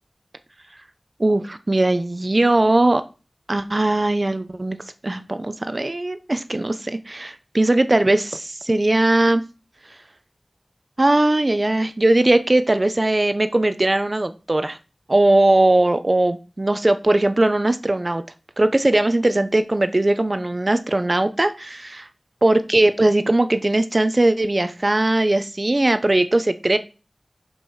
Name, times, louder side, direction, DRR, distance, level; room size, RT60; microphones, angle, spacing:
voice 1, 1.2-3.0 3.5-4.8 5.0-9.4 11.0-14.8 15.1-18.2 18.6-22.1 22.4-26.8, right 2 dB, 45° right, 11 dB, 0.9 m, -19 dB
7.5 x 5.3 x 6.4 m, 0.33 s
wide cardioid pair, 50°, 0 cm